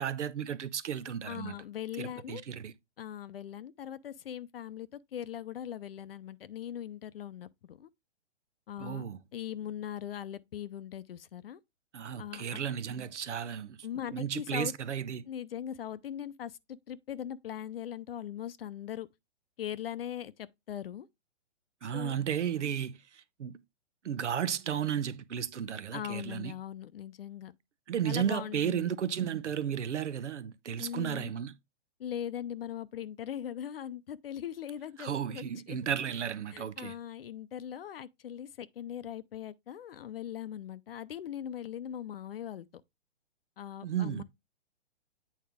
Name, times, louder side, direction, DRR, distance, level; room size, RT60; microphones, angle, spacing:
voice 1, 0.0-1.5 2.0-2.7 8.8-9.2 11.9-13.8 14.1-15.3 21.8-23.6 24.0-26.5 27.9-31.5 35.0-36.9 43.8-44.2, right 9 dB, 85° right, 1.0 m, -34 dB
voice 2, 1.2-2.4 3.0-7.9 8.7-9.0 9.3-11.6 12.2-12.6 13.8-14.7 15.3-19.1 19.6-21.1 21.8-22.1 25.9-27.5 28.0-28.9 30.8-31.3 32.0-35.8 36.5-42.7 43.6-44.2, left 10 dB, 55° left, 0.6 m, -40 dB
8.7 x 4.5 x 3.5 m
hypercardioid pair, 155°, 35 cm